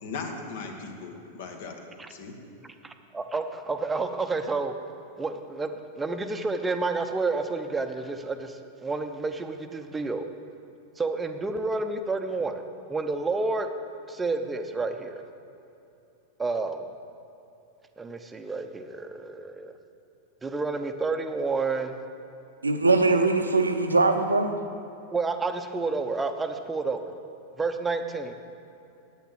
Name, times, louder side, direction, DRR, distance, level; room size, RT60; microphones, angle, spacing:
voice 1, 0.0-1.7 2.1-2.3, left 4 dB, 55° left, 3 dB, 1.4 m, -37 dB
voice 2, 2.6-4.7 5.2-10.2 11.0-13.7 14.1-15.2 16.4-16.8 18.0-19.7 20.4-22.0 25.1-27.1 27.6-28.3, right 3 dB, 15° right, 7 dB, 0.7 m, -30 dB
voice 3, 22.6-24.5, right 3 dB, 80° right, 7 dB, 0.8 m, -21 dB
9.2 x 8.9 x 7.5 m, 2.7 s
figure-of-eight pair, 90°, 0 cm